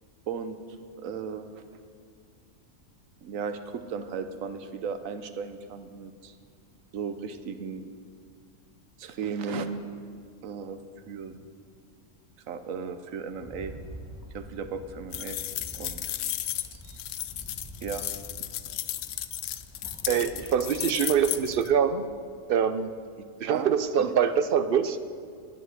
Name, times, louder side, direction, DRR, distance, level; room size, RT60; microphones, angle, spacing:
voice 1, 1.0-1.6 3.2-6.3 6.9-7.8 9.0-9.8 10.4-10.8 11.1-11.4 12.5-13.7 14.3-15.4 15.7-16.0 16.8-17.0 17.8-18.1 23.5-23.7 24.0-24.1, right 6 dB, 85° right, 9 dB, 1.2 m, -35 dB
Rattle, 13.3-21.7, right 1 dB, 5° right, 1.2 m, -46 dB
sound 1, 15.1-21.7, left 12 dB, 75° left, 0.9 m, -34 dB
voice 2, 20.1-22.0 22.5-22.9 23.4-25.0, right 8 dB, 65° right, 11 dB, 0.6 m, -24 dB
11.0 x 7.7 x 7.9 m, 2.1 s
omnidirectional pair, 1.4 m